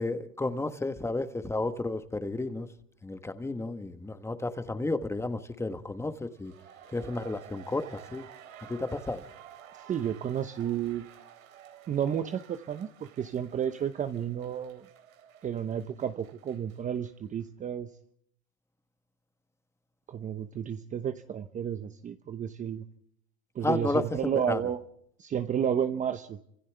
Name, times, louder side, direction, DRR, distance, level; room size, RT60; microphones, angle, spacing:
voice 1, 0.0-2.7 3.0-6.5 6.9-8.2 8.7-9.2 23.6-24.6, left 2 dB, 5° left, 10 dB, 1.3 m, -32 dB
sound 1, 6.3-17.1 17.4-17.5, right 9 dB, 85° right, 4.0 m, -52 dB
voice 2, 9.9-11.0 11.9-14.9 15.4-17.9 20.1-22.8 23.5-24.8 25.2-26.4, right 9 dB, 20° right, 9 dB, 0.9 m, -31 dB
29.0 x 26.5 x 3.4 m, 0.71 s
supercardioid pair, 130°, 40 cm